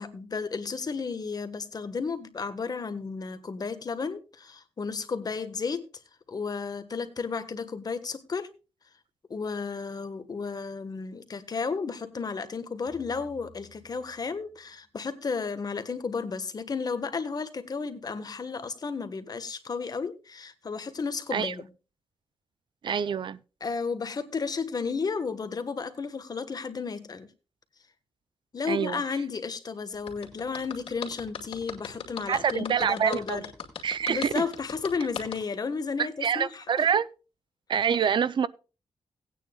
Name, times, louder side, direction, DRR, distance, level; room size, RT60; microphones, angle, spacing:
voice 1, 0.0-5.9 6.3-8.5 9.3-21.7 23.6-27.3 28.5-33.5 33.8-36.9, left 5 dB, 45° left, 1.3 m, -33 dB
sound 1, 12.9-15.1, equal, 5° right, 3.9 m, -55 dB
voice 2, 22.8-23.4 28.7-29.0 32.3-33.4 33.8-34.4 36.2-37.1 37.7-38.5, right 7 dB, 60° right, 0.5 m, -26 dB
sound 2, 30.1-35.4, left 7 dB, 85° left, 2.2 m, -37 dB
18.0 x 9.1 x 2.3 m
cardioid pair, 85°, 9 cm